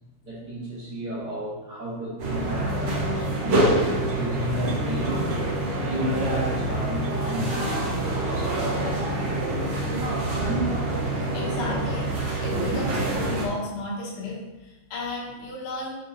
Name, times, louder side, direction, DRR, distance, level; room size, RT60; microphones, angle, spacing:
voice 1, 0.2-5.3 5.8-8.7 10.4-10.6, equal, 40° right, -11 dB, 1.4 m, -32 dB
sound 1, 2.2-13.4, right 1 dB, 60° right, 1.8 m, -26 dB
sound 2, 3.9-9.9, right 5 dB, 75° right, 3.0 m, -46 dB
voice 2, 11.3-12.1 12.4-16.0, left 2 dB, 80° left, -3 dB, 3.7 m, -33 dB
6.9 x 5.3 x 2.7 m, 1.0 s
omnidirectional pair, 5.3 m